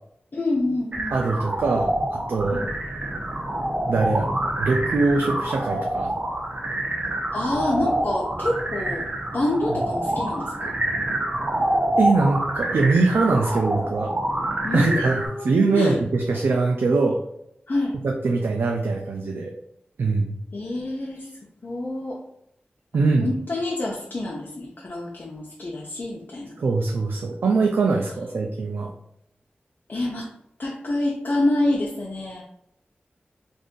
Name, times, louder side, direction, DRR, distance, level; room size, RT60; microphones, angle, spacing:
voice 1, 0.3-1.2 2.5-2.7 5.2-5.4 7.3-9.1 9.3-10.7 14.6-16.0 17.7-18.0 20.5-21.3 21.6-22.2 22.9-26.5 29.9-30.3 30.6-32.4, left 2 dB, 55° left, -2 dB, 0.6 m, -27 dB
sound 1, 0.9-15.3, right 1 dB, 45° right, 0.8 m, -27 dB
voice 2, 1.1-2.6 3.9-4.3 4.6-6.1 12.0-14.1 14.7-17.2 18.0-19.5 20.0-20.4 22.9-23.3 26.6-28.9, right 3 dB, 85° right, 2 dB, 0.4 m, -22 dB
2.5 x 2.5 x 3.6 m, 0.77 s
wide cardioid pair, 60°, 4 cm